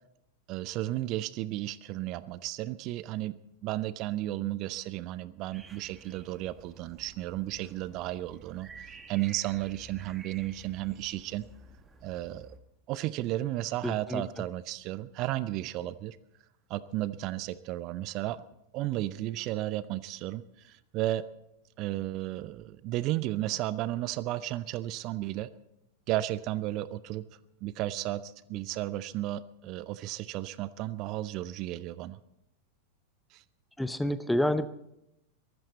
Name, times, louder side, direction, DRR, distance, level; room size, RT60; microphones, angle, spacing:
voice 1, 0.5-3.3 3.6-11.4 12.0-12.6 12.9-16.2 16.7-18.4 18.7-21.3 21.8-25.5 26.1-27.3 27.6-32.2 33.3-33.4, right 15 dB, 40° right, 18 dB, 0.6 m, -33 dB
sound 1, 5.5-12.6, right 3 dB, 20° right, 1.7 m, -52 dB
voice 2, 13.8-14.5 33.8-34.7, left 1 dB, 5° left, 14 dB, 0.7 m, -29 dB
23.0 x 13.0 x 4.1 m, 0.84 s
figure-of-eight pair, 90°, 0 cm